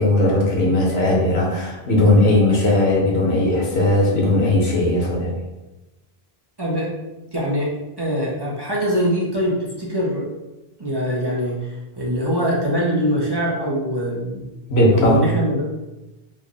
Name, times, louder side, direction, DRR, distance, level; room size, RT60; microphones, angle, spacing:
voice 1, 0.0-5.3 14.7-15.3, left 1 dB, 90° left, -3 dB, 1.2 m, -17 dB
voice 2, 6.6-6.9 7.3-7.7 8.0-10.3 10.8-14.4 14.9-15.6, equal, 25° right, -6 dB, 0.8 m, -23 dB
3.1 x 2.5 x 3.9 m, 1.0 s
omnidirectional pair, 1.0 m